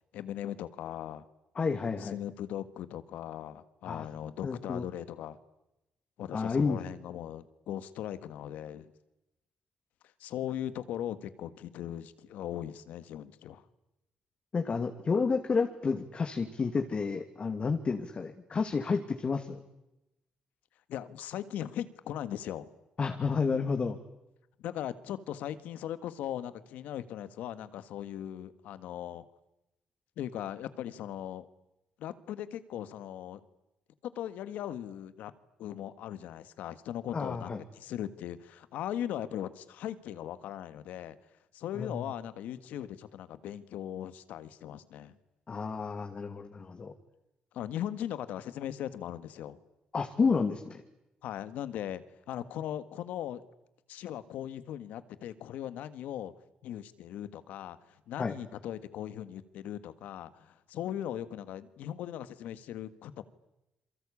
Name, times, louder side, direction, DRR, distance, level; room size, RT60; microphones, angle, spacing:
voice 1, 0.1-1.2 2.0-5.4 6.2-8.9 10.2-13.6 20.9-22.7 24.6-29.2 30.2-31.5 32.0-33.4 34.0-35.3 35.6-41.2 41.5-45.2 47.5-49.6 51.2-53.4 53.9-56.3 56.6-57.8 58.1-63.2, left 11 dB, 90° left, 13 dB, 1.6 m, -39 dB
voice 2, 1.5-2.2 3.9-4.0 4.4-4.8 6.3-6.8 14.5-19.6 23.0-24.0 37.1-37.6 41.7-42.0 45.5-46.9 49.9-50.8 58.2-58.3, left 5 dB, 45° left, 6 dB, 2.5 m, -30 dB
28.0 x 23.5 x 8.5 m, 0.92 s
cardioid pair, 75°, 3 cm